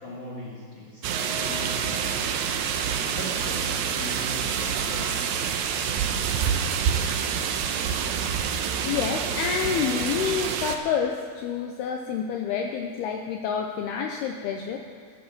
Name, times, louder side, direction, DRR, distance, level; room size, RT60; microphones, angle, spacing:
voice 1, 0.0-2.3 3.1-5.3, left 1 dB, 40° left, -4 dB, 1.9 m, -40 dB
sound 1, 1.0-10.8, right 7 dB, 80° right, 2.1 m, -27 dB
sound 2, 1.1-11.0, left 2 dB, 15° right, 4.4 m, -46 dB
voice 2, 8.8-14.8, left 7 dB, 80° left, 3 dB, 2.4 m, -28 dB
15.0 x 9.5 x 7.3 m, 2.1 s
omnidirectional pair, 5.3 m